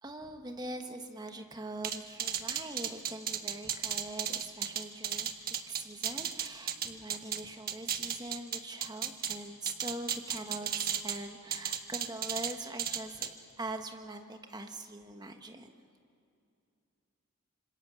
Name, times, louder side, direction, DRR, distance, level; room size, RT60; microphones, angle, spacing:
voice 1, 0.0-5.3 5.7-15.7, right 2 dB, 20° right, 5 dB, 1.3 m, -43 dB
sound 1, 1.8-7.4 7.7-9.4 9.7-11.2 11.5-12.5 12.8-13.3, right 9 dB, 40° right, 1.3 m, -34 dB
26.5 x 26.5 x 7.1 m, 2.6 s
head